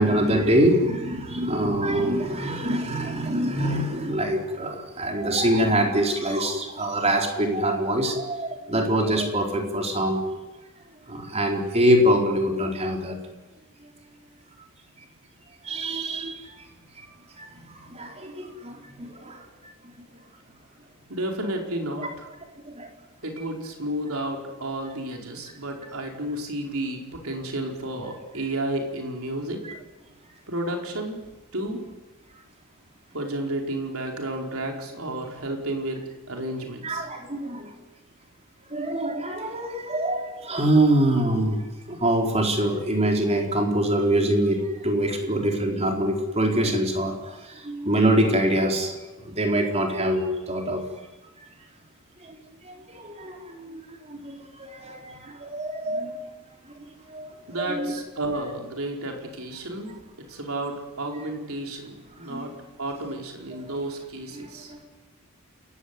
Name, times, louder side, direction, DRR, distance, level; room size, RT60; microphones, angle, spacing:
voice 1, 0.0-10.2 11.1-13.2 15.6-16.7 17.0-17.1 17.4-19.7 20.0-20.1 22.0-22.1 22.7-22.9 36.8-37.7 38.7-41.6 41.9-48.9 49.2-50.8 52.2-56.1 56.8-57.3 57.7-57.9 62.3-62.5 63.5-63.7 64.3-64.8, right 1 dB, 30° right, 2 dB, 4.2 m, -25 dB
voice 2, 21.1-22.3 23.2-29.6 30.5-31.2 31.5-31.8 33.1-36.0 36.3-37.1 57.5-59.9 60.3-62.5 62.8-64.7, right 1 dB, 65° right, 2 dB, 5.0 m, -31 dB
28.5 x 15.5 x 9.8 m, 1.1 s
head